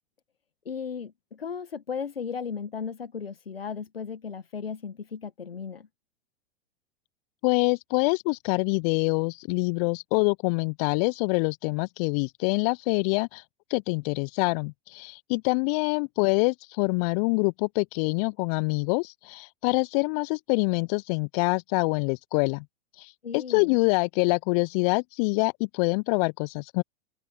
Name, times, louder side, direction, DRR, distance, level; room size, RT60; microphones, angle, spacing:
voice 1, 0.6-5.9 23.2-23.8, left 6 dB, 80° left, 1.3 m, -35 dB
voice 2, 7.4-13.4 13.7-22.6 23.0-26.8, left 33 dB, 40° left, 0.7 m, -25 dB
open air
figure-of-eight pair, 95°, 29 cm